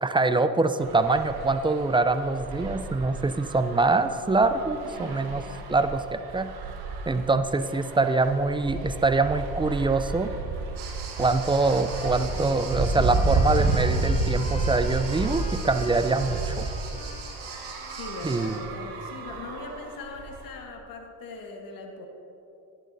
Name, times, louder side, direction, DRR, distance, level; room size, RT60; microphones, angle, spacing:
voice 1, 0.0-5.4 5.7-6.5 7.1-10.3 11.2-16.7 18.2-18.6, right 3 dB, 15° right, 10 dB, 0.4 m, -24 dB
sound 1, 0.8-20.6, right 3 dB, 70° right, 1.3 m, -31 dB
voice 2, 4.8-5.8 17.9-22.1, left 3 dB, 55° left, 2 dB, 1.5 m, -40 dB
sound 2, 10.8-18.6, right 6 dB, 85° right, 2.0 m, -42 dB
Trumpet, 11.4-18.5, left 2 dB, 15° left, 0.7 m, -44 dB
12.0 x 11.0 x 2.7 m, 2.9 s
supercardioid pair, 80°, 40 cm